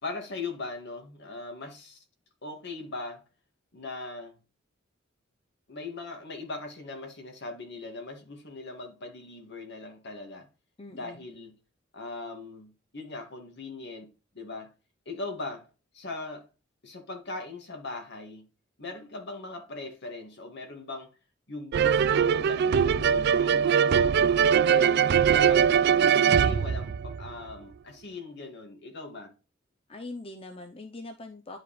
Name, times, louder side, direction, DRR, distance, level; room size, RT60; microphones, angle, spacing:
voice 1, 0.0-2.0 2.4-3.2 3.7-4.4 5.7-10.5 10.9-11.5 11.9-14.7 15.1-15.7 15.9-16.5 16.8-18.5 18.8-21.1 21.5-24.2 24.6-29.3, left 3 dB, 60° left, 2.0 m, -40 dB
voice 2, 10.8-11.2 29.9-31.6, left 2 dB, 30° left, 0.7 m, -42 dB
sound 1, 21.7-27.5, right 7 dB, 55° right, 0.3 m, -22 dB
11.0 x 4.9 x 3.2 m
head